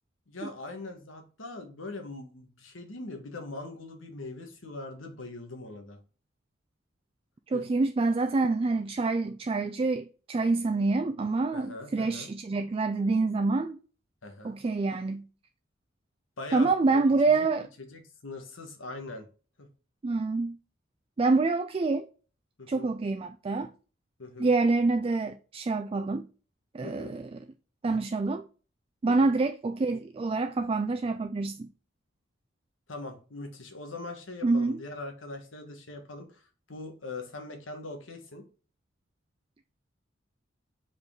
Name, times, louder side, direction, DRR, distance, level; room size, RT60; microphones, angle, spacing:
voice 1, 0.3-6.0 7.5-7.6 11.5-12.3 14.2-14.6 16.4-17.0 17.4-17.5 17.8-19.3 19.6-19.7 22.6-22.9 24.2-24.5 26.8-27.1 29.0-29.3 32.9-38.4, left 2 dB, 85° left, 1.4 m, -42 dB
voice 2, 7.5-13.8 14.4-15.3 16.5-17.7 20.0-20.6 21.2-22.1 22.7-23.7 24.4-26.3 26.7-27.4 27.8-28.5 29.0-31.7 34.4-34.8, right 3 dB, 30° right, 0.3 m, -27 dB
5.2 x 4.8 x 3.7 m
head